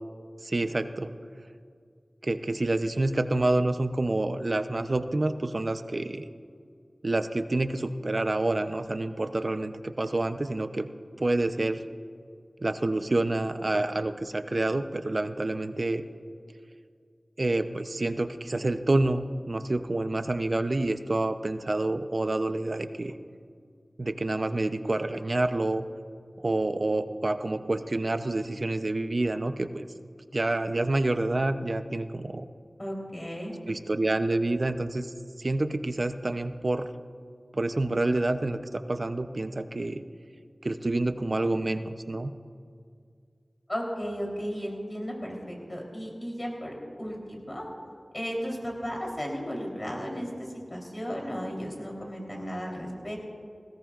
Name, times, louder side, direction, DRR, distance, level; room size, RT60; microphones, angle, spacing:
voice 1, 0.4-1.1 2.2-6.3 7.0-10.9 11.2-11.8 12.6-16.0 17.4-23.2 24.0-25.8 26.4-29.9 30.3-32.5 33.7-35.1 35.4-36.9 37.5-40.0 40.6-42.3, right 2 dB, 55° right, 9 dB, 0.7 m, -28 dB
voice 2, 32.8-33.5 43.7-47.7 48.1-53.2, equal, 30° left, -1 dB, 3.6 m, -35 dB
20.5 x 17.0 x 2.5 m, 2.2 s
wide cardioid pair, 55°, 0 cm